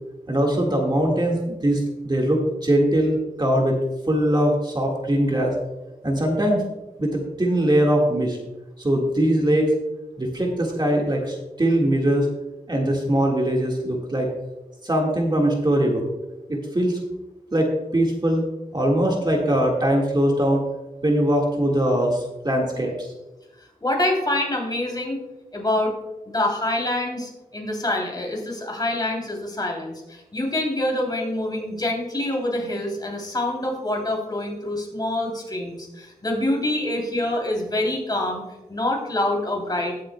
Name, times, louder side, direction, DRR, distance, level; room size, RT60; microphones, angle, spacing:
voice 1, 0.3-3.8 4.1-5.5 6.0-6.6 7.0-8.4 8.8-9.7 10.2-12.3 12.7-14.3 14.8-16.0 16.5-17.0 17.5-18.5 18.7-20.6 21.0-23.1, right 1 dB, 30° right, -1 dB, 1.8 m, -21 dB
voice 2, 23.8-25.2 25.5-25.9 26.3-38.4 38.7-39.9, left 1 dB, 30° left, 0 dB, 3.1 m, -26 dB
20.5 x 7.6 x 2.3 m, 1.0 s
wide cardioid pair, 85°, 15 cm